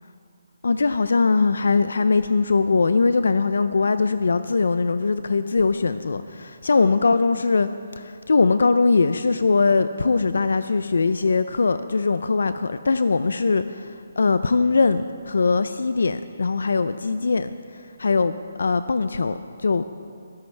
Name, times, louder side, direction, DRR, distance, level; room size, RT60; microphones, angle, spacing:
voice 1, 0.6-7.7 8.0-18.3 18.6-19.8, left 4 dB, 75° left, 12 dB, 0.5 m, -21 dB
22.0 x 13.5 x 3.4 m, 2.3 s
hypercardioid pair, 155°, 0 cm